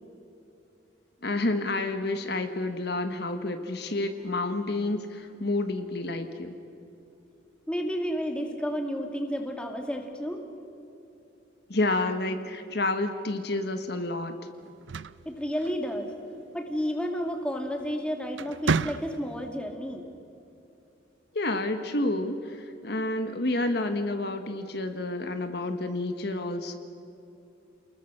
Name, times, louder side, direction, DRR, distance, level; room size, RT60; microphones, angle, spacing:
voice 1, 1.2-6.5 11.7-14.3 21.3-26.8, left 2 dB, 60° left, 7 dB, 1.5 m, -29 dB
voice 2, 7.7-10.5 15.3-16.1 16.5-20.1, equal, 5° left, 3 dB, 2.2 m, -31 dB
sound 1, 14.7-16.2 17.6-17.9 18.3-19.5, right 4 dB, 75° right, 0.6 m, -31 dB
29.0 x 21.0 x 6.7 m, 2.7 s
head